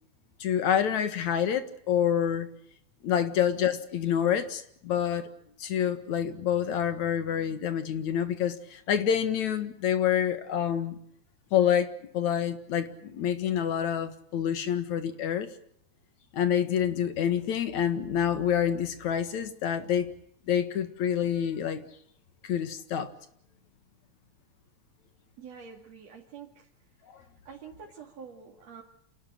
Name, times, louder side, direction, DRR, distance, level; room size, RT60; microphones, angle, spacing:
voice 1, 0.4-2.5 3.0-5.3 5.6-11.0 11.5-15.5 16.3-20.1 20.5-21.8 22.4-23.1, left 9 dB, 70° left, 10 dB, 3.0 m, -27 dB
voice 2, 25.4-26.7 27.0-28.8, right 6 dB, 60° right, -1 dB, 3.5 m, -47 dB
27.5 x 18.0 x 7.6 m, 0.69 s
omnidirectional pair, 3.4 m